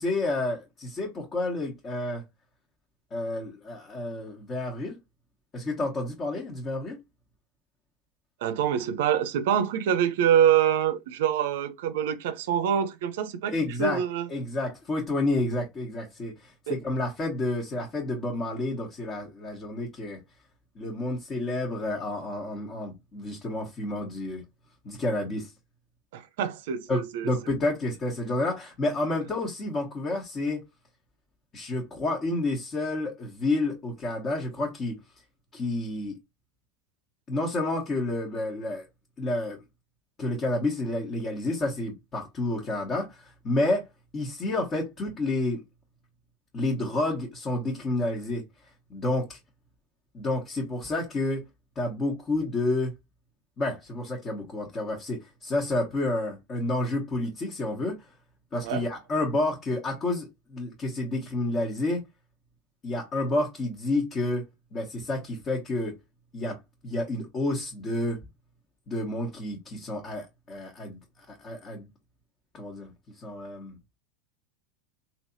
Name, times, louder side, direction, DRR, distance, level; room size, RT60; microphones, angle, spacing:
voice 1, 0.0-2.2 3.1-5.0 5.5-7.0 13.5-14.0 14.3-20.2 20.7-24.4 24.8-25.5 26.9-30.6 31.5-35.0 35.5-36.1 37.3-38.9 39.2-39.6 40.2-43.9 44.1-45.6 46.5-48.4 48.9-49.4 50.1-51.4 51.7-52.9 53.6-58.1 58.5-62.1 62.8-65.9 66.3-66.6 66.8-68.2 68.9-71.0 71.3-71.9 72.5-72.9 73.2-73.8, left 2 dB, 30° left, 1.2 m, -30 dB
voice 2, 8.4-14.3 16.7-16.8 26.1-27.5 58.6-58.8, right 9 dB, 70° right, 0.5 m, -25 dB
3.2 x 2.8 x 2.6 m
hypercardioid pair, 90°, 0 cm